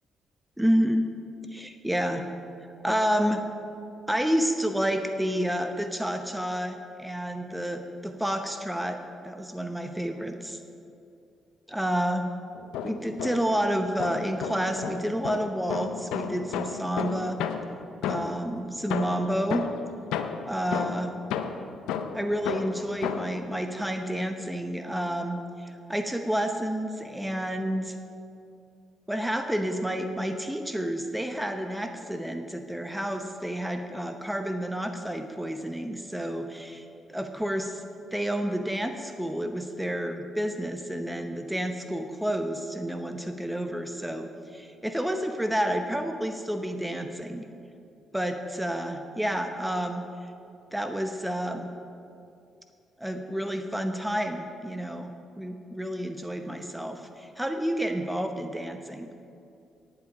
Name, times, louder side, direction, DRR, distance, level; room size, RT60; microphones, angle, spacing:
voice 1, 0.6-1.1 1.6-2.2 2.8-3.4 4.1-9.0 9.2-10.6 11.7-12.3 12.8-17.4 18.0-19.6 20.5-21.1 22.1-28.0 29.1-37.8 38.1-47.5 48.1-50.0 50.7-51.7 53.0-55.1 55.4-59.1, equal, 5° right, 6 dB, 0.8 m, -30 dB
sound 1, 12.6-13.6 14.0-18.5 18.9-23.4, left 7 dB, 75° left, 0.5 m, -33 dB
10.0 x 8.7 x 5.1 m, 2.5 s
hypercardioid pair, 50°, 0 cm